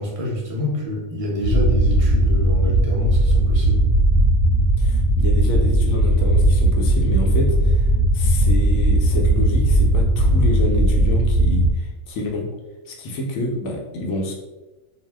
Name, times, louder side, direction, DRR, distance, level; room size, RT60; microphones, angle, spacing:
voice 1, 0.0-3.9, equal, 40° right, -3 dB, 0.5 m, -26 dB
sound 1, 1.4-11.7, right 1 dB, 55° right, 0.9 m, -17 dB
voice 2, 4.8-12.5 12.9-14.3, left 1 dB, 85° left, 1 dB, 1.0 m, -28 dB
2.6 x 2.1 x 3.2 m, 1.1 s
omnidirectional pair, 1.4 m